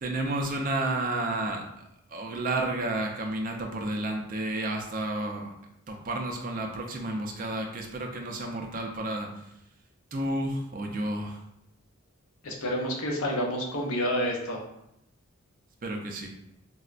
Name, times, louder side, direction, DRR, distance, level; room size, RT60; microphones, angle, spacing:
voice 1, 0.0-1.6 2.1-5.5 5.9-9.3 10.1-11.4 15.8-16.3, right 2 dB, 40° right, 2 dB, 0.4 m, -31 dB
voice 2, 12.4-14.6, equal, 75° left, 0 dB, 0.7 m, -29 dB
4.2 x 2.1 x 2.4 m, 0.80 s
head